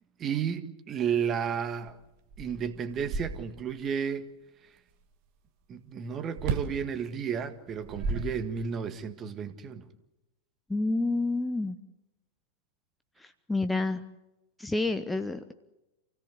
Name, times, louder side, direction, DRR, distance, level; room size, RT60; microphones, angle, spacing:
voice 1, 0.2-2.0 2.4-4.3 5.7-9.9, right 7 dB, 30° right, 1.7 m, -32 dB
sound 1, 1.9-2.0 2.3-3.8 6.4-6.8 7.7-8.9, right 4 dB, 45° right, 1.6 m, -34 dB
voice 2, 10.7-11.8 13.2-14.0 14.6-15.5, left 2 dB, 5° left, 0.9 m, -29 dB
27.5 x 17.0 x 8.1 m
figure-of-eight pair, 90°, 0 cm